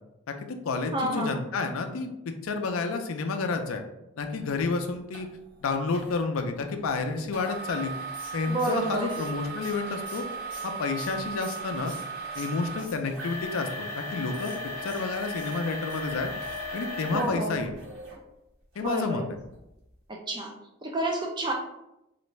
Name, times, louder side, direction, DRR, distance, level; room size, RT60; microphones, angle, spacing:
voice 1, 0.3-3.8 4.2-5.3 5.6-7.9 8.3-10.2 10.6-11.9 12.4-16.3 16.7-17.7 18.8-19.4, left 4 dB, 85° left, 6 dB, 0.4 m, -30 dB
voice 2, 0.9-1.4 8.5-9.2 17.1-17.7 18.8-19.2 20.1-20.5 20.8-21.5, right 2 dB, 20° right, 1 dB, 0.4 m, -30 dB
sound 1, 5.1-5.2 5.9-6.2 7.3-18.2 18.7-18.8 19.4-19.6, right 1 dB, 75° right, 1.1 m, -37 dB
sound 2, 8.1-12.1 12.3-13.3 14.3-16.0 16.4-16.7 17.0-17.1 17.4-17.5, right 1 dB, 40° right, 1.2 m, -48 dB
3.1 x 2.5 x 3.1 m, 0.89 s
head